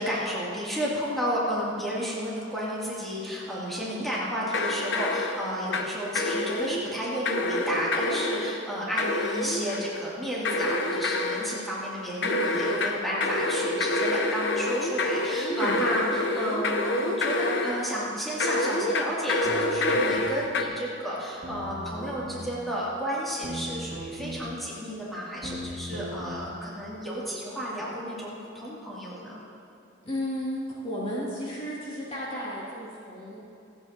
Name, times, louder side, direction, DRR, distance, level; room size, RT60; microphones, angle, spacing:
voice 1, 0.0-29.4, equal, ahead, -8 dB, 2.8 m, -32 dB
sound 1, 4.5-5.9 6.2-6.9 7.3-8.6 9.0-10.0 10.5-11.6 12.2-17.9 18.4-20.6, left 2 dB, 65° left, 0.9 m, -27 dB
sound 2, 19.4-20.4 21.4-22.4 23.4-24.4 25.4-26.4, equal, 50° right, 2.5 m, -38 dB
voice 2, 30.0-33.4, equal, 30° left, -7 dB, 2.6 m, -33 dB
26.5 x 9.0 x 3.0 m, 2.8 s
head